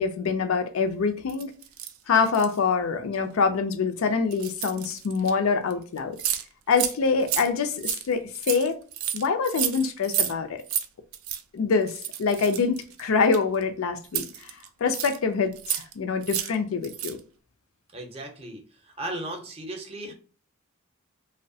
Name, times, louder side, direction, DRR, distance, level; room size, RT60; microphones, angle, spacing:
voice 1, 0.0-1.5 2.1-6.2 6.7-8.8 9.1-10.6 11.5-11.9 12.2-14.3 14.8-17.2, left 5 dB, 90° left, 0.4 m, -25 dB
sound 1, 1.3-2.6 3.1-3.3 4.3-5.3 5.7-5.8 6.0-6.4 6.7-6.9 7.2-10.3 10.6-10.9 11.1-11.4 11.9-13.6 14.0-15.2 15.5-15.9 16.2-16.5 16.8-17.2, right 10 dB, 80° right, 0.4 m, -31 dB
voice 2, 17.9-20.1, right 1 dB, 30° right, 0.5 m, -36 dB
2.7 x 2.1 x 2.6 m
head